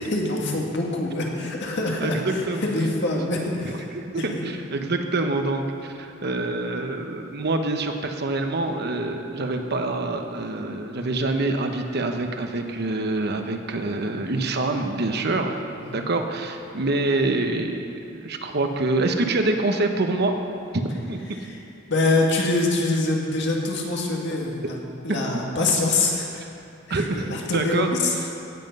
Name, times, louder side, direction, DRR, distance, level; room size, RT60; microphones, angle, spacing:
voice 1, 0.0-3.9 4.2-4.4 15.2-15.3 15.8-16.0 21.4-21.6 21.9-24.8 25.0-26.4 26.9-28.1, left 2 dB, 60° left, -1 dB, 2.0 m, -25 dB
voice 2, 2.0-2.7 3.1-3.2 3.9-15.6 15.9-20.4 20.7-20.8 21.1-21.4 26.9-27.9, right 2 dB, 55° right, 5 dB, 1.0 m, -26 dB
17.0 x 7.6 x 5.4 m, 2.6 s
head